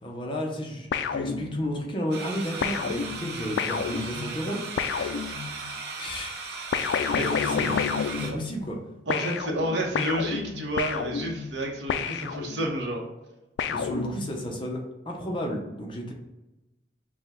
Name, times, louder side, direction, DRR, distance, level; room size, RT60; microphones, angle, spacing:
voice 1, 0.0-4.6 4.9-5.1 6.0-6.3 6.7-7.8 8.1-8.8 13.7-14.8 15.1-16.1, equal, 30° left, 0 dB, 0.7 m, -33 dB
sound 1, 0.9-1.9 2.6-5.8 6.7-8.8 9.1-12.9 13.6-14.6, left 6 dB, 75° left, 0.3 m, -30 dB
sound 2, 2.1-8.3, right 4 dB, 60° right, 0.6 m, -37 dB
voice 2, 9.1-13.0, right 1 dB, 85° right, 0 dB, 1.0 m, -30 dB
5.1 x 2.3 x 3.5 m, 1.0 s
head